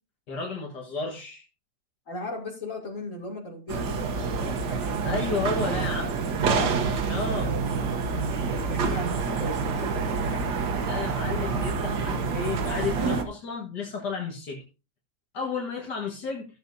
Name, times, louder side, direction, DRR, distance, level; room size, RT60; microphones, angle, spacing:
voice 1, 0.3-1.4 5.0-6.1 7.1-7.5 10.8-14.6 15.3-16.5, left 4 dB, 80° left, 2.2 m, -32 dB
voice 2, 2.1-5.8 6.4-6.8 8.5-10.5, left 1 dB, 50° left, 3.3 m, -37 dB
sound 1, 3.7-13.2, right 5 dB, 80° right, 1.7 m, -27 dB
15.0 x 7.1 x 2.7 m
omnidirectional pair, 1.8 m